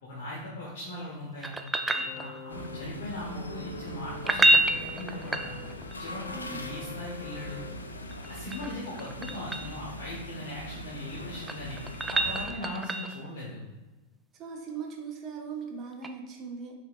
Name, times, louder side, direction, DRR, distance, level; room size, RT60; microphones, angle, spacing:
voice 1, 0.0-1.6 2.1-5.6 6.0-7.6 8.3-11.8 12.1-13.6, left 1 dB, 55° left, -5 dB, 0.9 m, -39 dB
sound 1, 1.4-2.7 4.1-6.0 8.1-9.8 11.2-13.3 16.0-16.1, right 1 dB, 10° right, 0.3 m, -28 dB
sound 2, 1.9-8.1 9.2-9.3, left 2 dB, 90° right, 0.9 m, -46 dB
sound 3, 2.5-12.5, left 1 dB, 75° left, 0.4 m, -42 dB
voice 2, 6.3-6.6 8.4-8.7 12.5-12.9 14.4-16.7, right 5 dB, 30° right, 0 dB, 0.7 m, -40 dB
5.6 x 3.4 x 2.4 m, 1.2 s
figure-of-eight pair, 90°, 0 cm